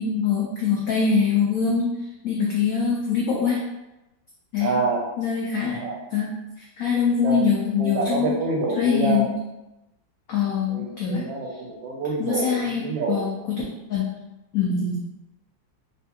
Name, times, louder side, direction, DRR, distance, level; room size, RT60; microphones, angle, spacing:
voice 1, 0.0-1.9 2.2-3.6 4.5-4.7 5.2-5.8 6.1-6.3 6.6-8.4 8.7-9.3 10.3-11.3 12.2-13.6 13.9-14.2 14.5-15.0, left 6 dB, 85° left, -3 dB, 0.7 m, -23 dB
voice 2, 4.6-5.0 5.8-6.0 7.2-7.5 7.8-9.3 10.7-13.2, right 3 dB, 80° right, 0 dB, 1.3 m, -27 dB
3.3 x 2.3 x 2.8 m, 0.96 s
omnidirectional pair, 2.0 m